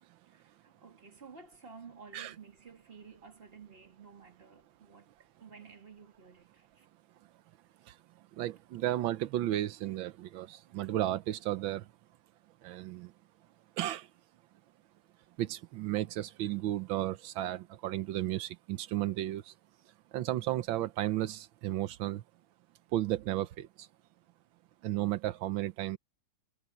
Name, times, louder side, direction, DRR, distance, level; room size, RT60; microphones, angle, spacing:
voice 1, 0.3-6.9, right 5 dB, 30° right, 2.4 m, -53 dB
voice 2, 8.3-11.9 12.6-13.1 13.8-14.1 15.4-19.5 19.9-22.2 22.9-23.9 24.8-26.0, right 14 dB, 85° right, 1.5 m, -34 dB
omnidirectional pair, 2.1 m